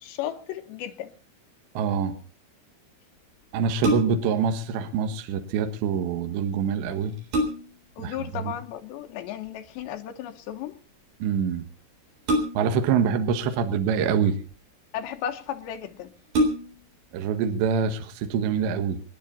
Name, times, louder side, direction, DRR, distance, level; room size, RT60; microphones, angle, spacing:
voice 1, 0.0-1.1 8.0-10.8 14.9-16.1, left 10 dB, 75° left, 2.8 m, -34 dB
voice 2, 1.8-2.2 3.5-7.1 8.0-8.2 11.2-11.7 12.6-14.4 17.1-19.1, right 6 dB, 70° right, 3.4 m, -25 dB
sound 1, 3.8-4.4 6.4-6.5 7.0-7.9 9.4-9.8 12.3-12.9 13.8-14.5 15.3-15.4 15.7-15.8 16.3-16.9 17.4-17.5, right 1 dB, 50° right, 5.2 m, -27 dB
28.0 x 10.5 x 4.1 m
omnidirectional pair, 6.0 m